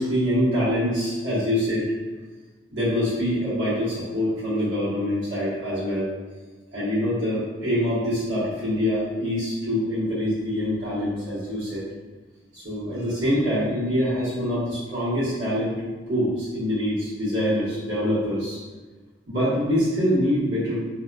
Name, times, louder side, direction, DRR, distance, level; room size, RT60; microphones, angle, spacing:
voice 1, 0.0-1.8 2.7-6.1 6.7-11.8 12.5-15.8 16.1-18.6 19.3-20.8, equal, 85° right, -12 dB, 1.4 m, -25 dB
2.7 x 2.5 x 2.2 m, 1.3 s
head